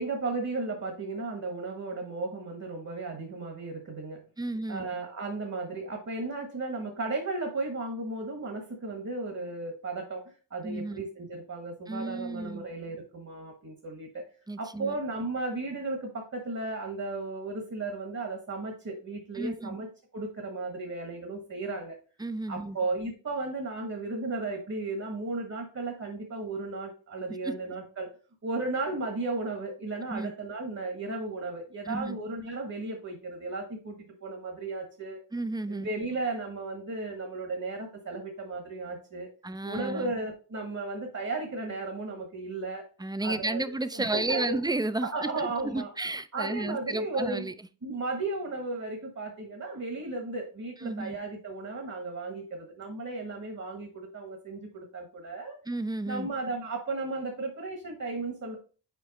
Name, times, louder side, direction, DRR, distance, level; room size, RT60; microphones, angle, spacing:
voice 1, 0.0-4.2 4.7-10.2 10.5-14.3 14.6-19.9 20.1-22.0 22.5-28.1 28.4-35.2 35.7-39.3 39.6-42.8 43.2-44.6 45.0-45.9 46.3-47.5 47.8-55.6 56.1-58.6, right 3 dB, 40° right, 1.4 m, -35 dB
voice 2, 4.4-4.8 10.6-11.0 11.9-12.7 14.5-15.0 19.4-19.8 22.2-22.8 30.1-30.3 31.9-32.2 35.3-35.9 39.4-40.1 43.0-47.5 50.8-51.2 55.7-56.3, right 2 dB, 10° right, 0.4 m, -32 dB
5.2 x 4.6 x 4.1 m
cardioid pair, 80°, 42 cm